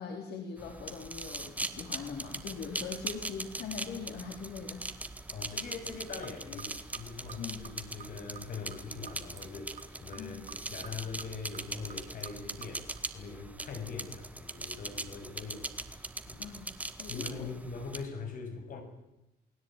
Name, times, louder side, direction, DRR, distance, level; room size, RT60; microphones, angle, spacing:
voice 1, 0.0-4.8 6.5-6.6 7.4-7.6 10.2-10.4 16.4-16.7 17.0-17.5, left 6 dB, 80° left, 3 dB, 4.2 m, -41 dB
sound 1, 0.6-18.1, right 2 dB, 10° right, 1.7 m, -41 dB
voice 2, 5.3-16.5 17.1-18.8, left 5 dB, 55° left, 6 dB, 7.0 m, -42 dB
sound 2, 6.0-13.0, right 8 dB, 45° right, 2.6 m, -52 dB
29.0 x 19.5 x 9.2 m, 0.88 s
cardioid pair, 135°, 17 cm